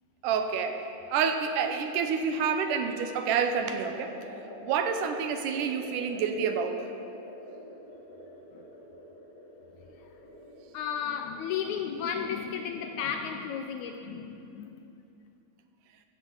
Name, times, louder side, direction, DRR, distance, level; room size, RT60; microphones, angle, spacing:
voice 1, 0.2-4.1 4.6-6.9, right 6 dB, 75° right, 6 dB, 2.3 m, -28 dB
sound 1, 3.6-13.2, left 1 dB, 55° left, 4.3 m, -46 dB
voice 2, 10.7-14.9, left 7 dB, 80° left, 6 dB, 1.8 m, -34 dB
15.5 x 13.5 x 3.9 m, 2.7 s
omnidirectional pair, 3.8 m